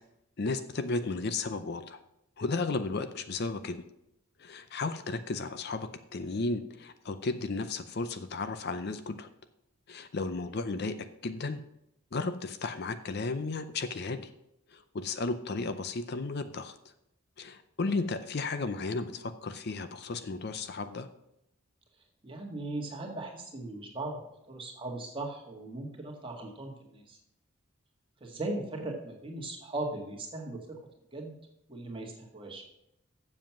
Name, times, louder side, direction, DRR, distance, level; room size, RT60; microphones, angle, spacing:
voice 1, 0.4-2.0 2.4-3.8 4.4-9.3 9.9-11.0 11.2-11.6 12.1-14.3 14.7-16.7 17.4-21.1, left 3 dB, 50° left, 11 dB, 0.5 m, -34 dB
voice 2, 22.2-24.2 24.5-27.2 28.2-30.6 31.1-31.3 31.7-32.6, right 2 dB, 25° right, 0 dB, 1.8 m, -38 dB
7.5 x 7.3 x 5.9 m, 0.81 s
head